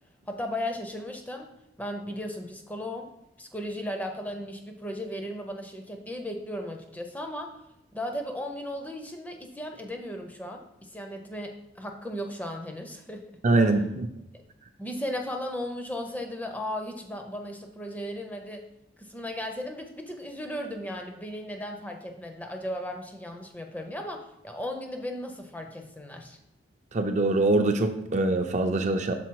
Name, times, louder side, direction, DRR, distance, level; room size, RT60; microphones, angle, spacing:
voice 1, 0.3-1.5 1.8-3.1 3.4-7.5 7.9-13.3 14.8-18.6 19.0-26.4, left 1 dB, 10° left, 3 dB, 0.5 m, -36 dB
voice 2, 13.4-14.1 26.9-29.1, right 2 dB, 40° right, 5 dB, 0.5 m, -23 dB
6.0 x 3.8 x 4.6 m, 0.84 s
head